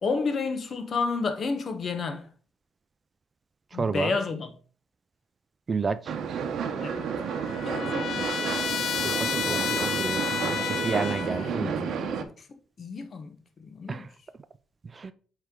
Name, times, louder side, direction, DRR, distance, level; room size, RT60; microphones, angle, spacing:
voice 1, 0.0-2.3 3.7-4.5 6.8-7.1 7.6-8.4 11.2-12.5 12.8-13.3 13.6-14.0, left 4 dB, 50° left, 1.0 m, -31 dB
voice 2, 3.7-4.1 5.7-6.1 9.0-11.9 13.9-14.1 14.8-15.1, right 4 dB, 35° right, 0.4 m, -31 dB
sound 1, 6.1-12.2, right 7 dB, 70° right, 0.7 m, -31 dB
Trumpet, 6.8-11.5, left 8 dB, 70° left, 0.5 m, -31 dB
8.0 x 3.3 x 3.7 m
cardioid pair, 90°, 0 cm